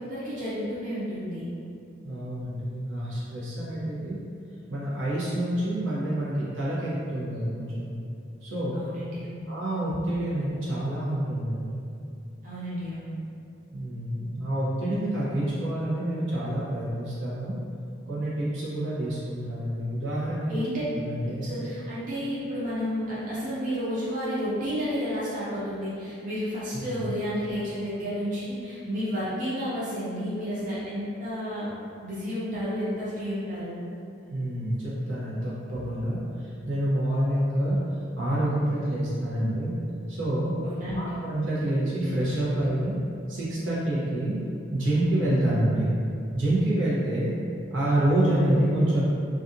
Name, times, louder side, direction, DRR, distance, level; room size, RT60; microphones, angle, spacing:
voice 1, 0.0-1.5 8.7-9.5 12.4-13.2 20.5-20.8 21.2-31.7 32.0-33.7 40.6-41.2, equal, 40° right, -10 dB, 0.6 m, -31 dB
voice 2, 2.0-4.2 4.7-7.9 8.4-8.8 9.5-11.8 13.7-17.5 18.1-20.5 21.0-21.5 26.9-27.0 34.3-37.8 38.2-39.7 40.1-40.5 40.9-43.0 43.3-44.4 44.7-45.9 46.3-47.3 47.7-49.0, right 1 dB, 90° right, -9 dB, 0.8 m, -27 dB
2.5 x 2.3 x 2.6 m, 2.5 s
head